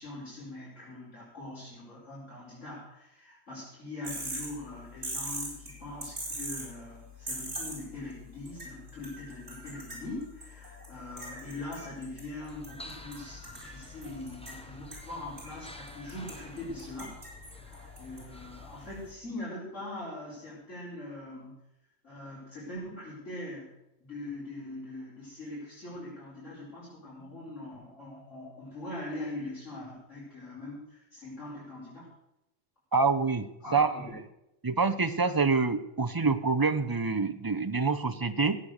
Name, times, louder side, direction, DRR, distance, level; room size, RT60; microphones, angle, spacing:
voice 1, 0.0-17.2 17.6-21.5 22.0-23.7 24.0-32.1 33.6-34.0, left 2 dB, 65° left, -9 dB, 5.3 m, -42 dB
sound 1, 4.0-19.1, right 1 dB, 70° right, 5.0 m, -43 dB
sound 2, 12.5-19.1, left 1 dB, 5° left, 1.0 m, -50 dB
voice 2, 32.9-33.9 34.6-38.6, right 4 dB, 25° right, 8 dB, 0.6 m, -26 dB
16.0 x 8.9 x 6.6 m, 0.86 s
omnidirectional pair, 1.3 m